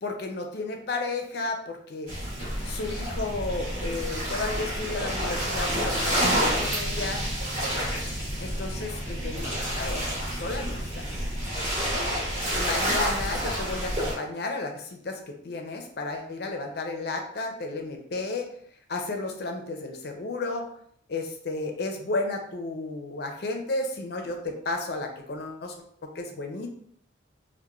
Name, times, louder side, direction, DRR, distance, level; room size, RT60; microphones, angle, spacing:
voice 1, 0.0-2.1 2.6-7.2 8.4-11.1 12.6-18.5 18.9-20.7 21.1-25.7 26.0-26.7, left 3 dB, 55° left, 3 dB, 0.4 m, -33 dB
sound 1, 2.1-14.1, equal, 35° right, 0.9 m, -29 dB
2.9 x 2.1 x 2.3 m, 0.65 s
head